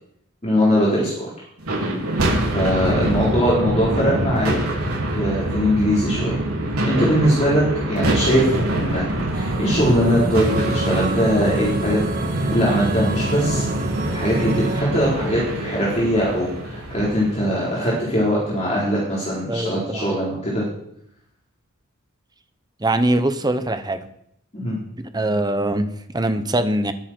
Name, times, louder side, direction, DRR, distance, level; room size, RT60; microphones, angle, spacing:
voice 1, 0.4-1.3 2.5-4.6 5.1-6.4 6.8-9.0 9.3-12.0 12.3-13.6 14.1-20.6 24.5-24.8, equal, 30° left, -6 dB, 4.3 m, -21 dB
sound 1, 1.6-18.0, right 1 dB, 80° right, 4.8 m, -25 dB
sound 2, 9.3-14.8, right 3 dB, 40° right, 1.8 m, -27 dB
voice 2, 19.5-20.2 22.8-24.0 25.0-26.9, right 1 dB, 20° right, 10 dB, 0.9 m, -22 dB
21.0 x 9.6 x 4.5 m, 0.74 s
head